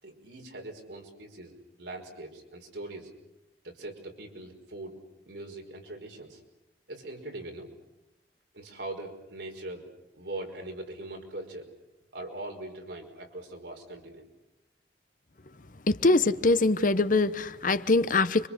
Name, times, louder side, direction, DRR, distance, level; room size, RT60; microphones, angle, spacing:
voice 1, 0.0-1.5 1.8-3.1 3.6-4.9 5.3-6.4 6.9-7.7 8.5-9.9 10.1-11.7 12.1-14.3, right 2 dB, 80° right, 5.3 m, -41 dB
voice 2, 15.9-18.5, left 2 dB, 50° left, 0.9 m, -23 dB
29.5 x 25.0 x 6.7 m
head